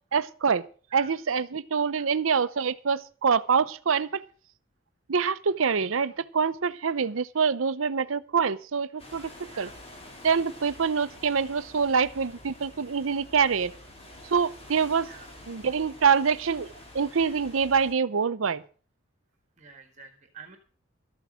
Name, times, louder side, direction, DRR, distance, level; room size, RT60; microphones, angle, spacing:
voice 1, 0.1-0.6 0.9-4.2 5.1-9.3 9.6-9.7 10.2-13.7 14.3-15.1 15.5-16.7 16.9-18.6, right 6 dB, 75° right, 0.7 m, -25 dB
sound 1, 9.0-17.9, left 1 dB, 30° left, 2.9 m, -48 dB
voice 2, 19.6-20.6, right 6 dB, 35° right, 1.8 m, -48 dB
13.0 x 8.6 x 6.2 m
head